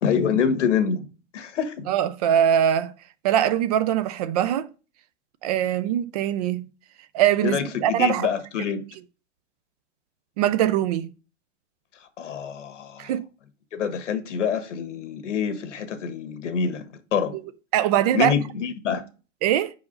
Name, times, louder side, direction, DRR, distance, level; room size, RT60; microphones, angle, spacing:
voice 1, 0.0-1.1 1.3-1.9 7.4-8.8 12.2-13.1 13.7-16.8 17.1-17.3 18.1-19.0, left 7 dB, 90° left, 1.6 m, -26 dB
voice 2, 1.9-2.9 3.2-4.7 5.4-6.7 7.1-8.3 10.4-11.1 13.0-13.3 17.7-18.3 19.4-19.7, right 10 dB, 35° right, 0.4 m, -22 dB
5.4 x 4.8 x 5.2 m
hypercardioid pair, 150°, 35 cm